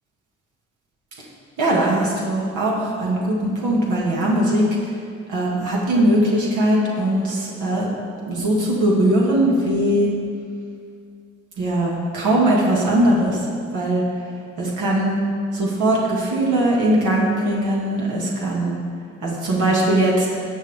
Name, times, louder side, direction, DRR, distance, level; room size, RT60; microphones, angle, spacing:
voice 1, 1.6-4.6 5.3-7.9 8.3-10.1 11.6-13.4 13.7-14.0 14.6-15.2 15.5-18.8 19.2-20.3, right 1 dB, 85° right, -4 dB, 2.2 m, -20 dB
17.0 x 6.2 x 3.7 m, 2.3 s
cardioid pair, 90°, 30 cm